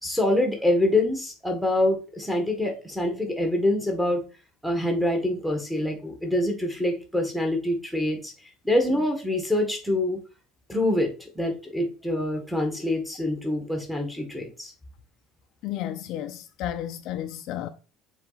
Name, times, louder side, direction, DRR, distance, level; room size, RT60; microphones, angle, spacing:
voice 1, 0.0-4.2 4.6-8.3 8.6-10.2 10.7-14.7, left 1 dB, ahead, 1.5 m, -25 dB
voice 2, 15.6-17.7, left 12 dB, 50° left, 0.6 m, -32 dB
7.0 x 4.1 x 4.1 m
cardioid pair, 170°, 0 cm